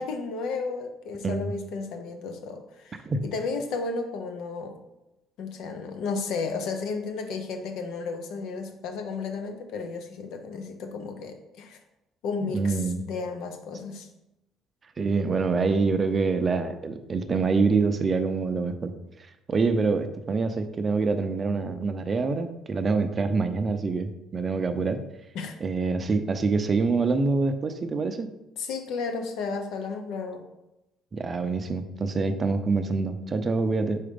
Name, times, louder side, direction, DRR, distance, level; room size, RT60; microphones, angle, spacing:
voice 1, 0.0-4.8 5.4-11.8 12.2-14.1 25.3-25.6 28.6-30.5, left 4 dB, 75° left, 6 dB, 0.8 m, -33 dB
voice 2, 12.5-13.1 15.0-18.9 19.5-25.0 25.6-28.3 31.1-34.0, right 4 dB, 30° right, 8 dB, 0.5 m, -25 dB
4.8 x 4.2 x 5.1 m, 0.93 s
cardioid pair, 125°, 0 cm